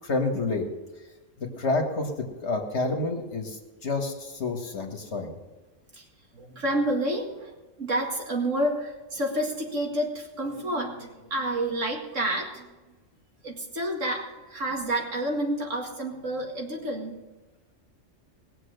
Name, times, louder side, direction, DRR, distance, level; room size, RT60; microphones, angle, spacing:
voice 1, 0.0-0.7 1.4-2.1 2.4-5.3, left 3 dB, 60° left, 3 dB, 2.0 m, -29 dB
voice 2, 6.3-7.5 7.8-12.7 13.4-17.2, right 1 dB, 80° right, 1 dB, 2.4 m, -29 dB
19.0 x 7.4 x 6.6 m, 1.1 s
omnidirectional pair, 1.3 m